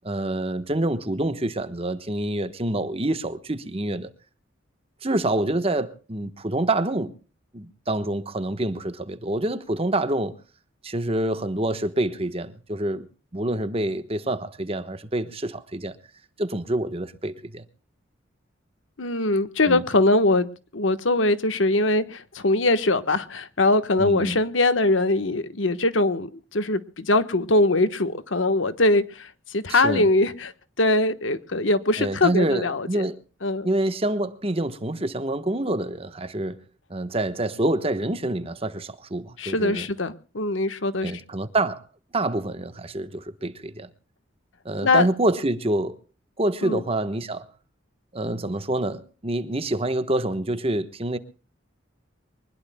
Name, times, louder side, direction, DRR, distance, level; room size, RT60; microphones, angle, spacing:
voice 1, 0.0-4.1 5.0-7.1 7.5-10.4 10.8-16.0 16.4-17.6 19.6-19.8 24.0-24.4 29.7-30.1 32.0-33.2 33.6-36.6 36.9-39.9 41.0-41.8 42.1-43.9 44.6-46.0 46.4-47.5 48.1-51.2, right 1 dB, 30° right, 1.2 m, -27 dB
voice 2, 19.0-20.5 20.7-30.5 30.8-33.0 33.4-33.7 39.4-41.1 44.8-45.1 46.6-46.8, left 2 dB, 75° left, 1.3 m, -22 dB
24.0 x 20.5 x 2.2 m
head